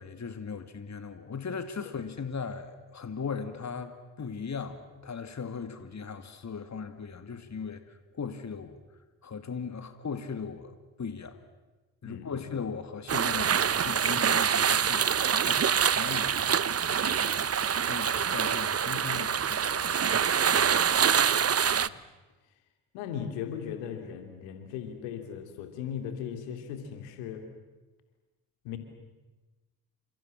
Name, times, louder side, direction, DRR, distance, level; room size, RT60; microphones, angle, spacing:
voice 1, 0.0-7.8 8.1-8.8 9.2-11.4 12.0-17.5 17.8-20.0, left 5 dB, 35° left, 10 dB, 2.5 m, -38 dB
voice 2, 12.0-12.4 20.5-21.9 22.9-27.5 28.6-28.8, left 8 dB, 75° left, 7 dB, 3.3 m, -38 dB
sound 1, 13.1-21.9, right 7 dB, 30° right, 1.0 m, -25 dB
29.5 x 27.0 x 7.5 m, 1.2 s
hypercardioid pair, 45°, 45 cm